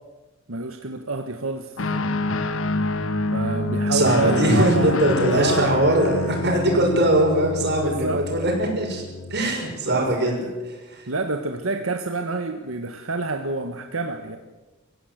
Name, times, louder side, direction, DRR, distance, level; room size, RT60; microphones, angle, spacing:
voice 1, 0.5-1.8 3.3-5.0 5.3-5.9 7.8-8.2 9.8-10.1 10.4-10.5 11.1-14.4, right 3 dB, 85° right, 5 dB, 1.4 m, -28 dB
Guitar, 1.8-9.4, left 2 dB, 70° left, 1.4 m, -27 dB
voice 2, 3.9-9.0 9.3-11.1, right 1 dB, 55° right, 1 dB, 6.4 m, -21 dB
24.5 x 15.5 x 8.0 m, 1.2 s
head